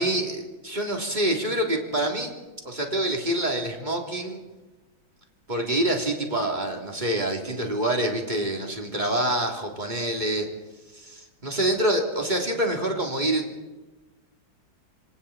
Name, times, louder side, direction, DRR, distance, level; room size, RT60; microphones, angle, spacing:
voice 1, 0.0-2.3 2.6-4.4 5.5-10.5 10.9-13.5, right 1 dB, 20° right, 1 dB, 3.4 m, -26 dB
26.0 x 26.0 x 4.4 m, 1.1 s
omnidirectional pair, 2.3 m